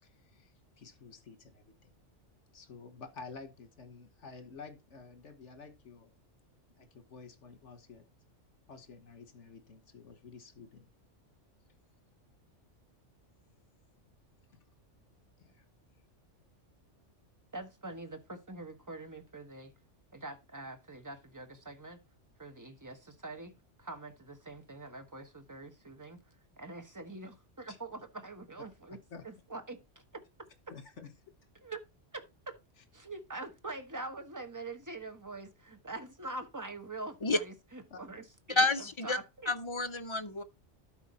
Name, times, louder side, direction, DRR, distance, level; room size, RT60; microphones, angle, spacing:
voice 1, 0.0-1.9 2.5-6.2 6.8-8.0 8.7-10.9 15.4-15.7 27.7-27.8 29.1-29.2 30.7-31.3 37.9-38.0, left 5 dB, 70° left, 1.6 m, -51 dB
voice 2, 17.5-19.7 20.1-22.0 22.4-23.5 23.8-29.0 29.2-30.2 31.6-31.8 32.1-32.6 32.9-39.5, right 2 dB, 15° right, 1.1 m, -44 dB
voice 3, 38.6-39.2 39.5-40.4, left 2 dB, 35° left, 0.4 m, -29 dB
12.0 x 4.6 x 4.3 m
omnidirectional pair, 1.2 m